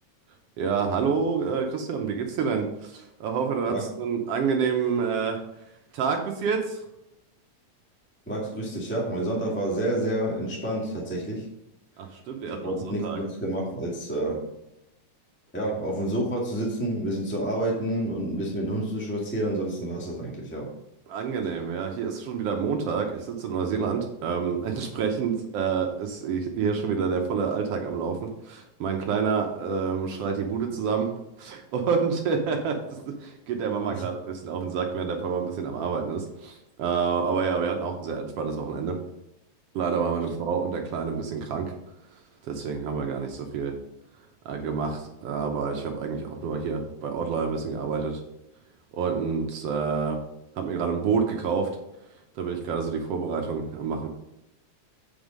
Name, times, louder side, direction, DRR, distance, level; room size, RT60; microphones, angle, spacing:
voice 1, 0.6-5.4 5.9-6.8 12.0-13.2 21.1-31.1 31.4-39.0 39.7-41.7 42.4-43.7 44.4-48.2 48.9-50.2 50.6-51.7 52.3-54.1, right 6 dB, 70° right, 3 dB, 1.6 m, -28 dB
voice 2, 8.3-11.4 12.6-14.4 15.5-20.7 33.9-34.0, right 1 dB, 5° left, -3 dB, 1.6 m, -29 dB
8.0 x 5.4 x 5.2 m, 0.86 s
omnidirectional pair, 3.3 m